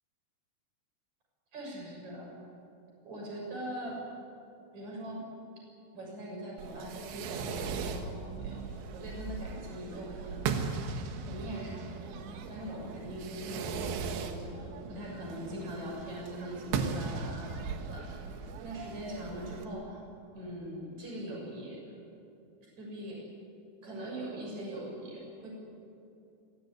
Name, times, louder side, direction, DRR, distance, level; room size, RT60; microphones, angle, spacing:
voice 1, 1.5-2.3 3.0-4.0 4.7-5.3 5.9-8.7 8.9-10.7 11.3-18.1 18.6-20.0 20.3-21.9 22.6-23.3 23.8-25.5, equal, 40° right, -2 dB, 7.8 m, -41 dB
Fireworks, 6.6-19.7, right 5 dB, 80° right, 3.7 m, -38 dB
27.5 x 16.5 x 9.8 m, 2.7 s
omnidirectional pair, 5.2 m